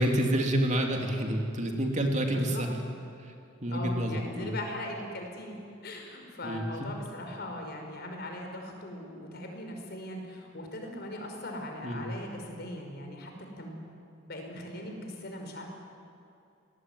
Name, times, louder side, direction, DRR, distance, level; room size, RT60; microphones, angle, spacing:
voice 1, 0.0-2.7 3.6-4.5 6.4-6.6 11.8-12.0, right 1 dB, 35° right, 2 dB, 2.9 m, -28 dB
voice 2, 2.3-2.6 3.7-5.6 5.8-13.3 13.6-13.9 14.3-15.7, left 1 dB, 50° left, 2 dB, 5.3 m, -40 dB
28.0 x 20.0 x 9.6 m, 2.6 s
head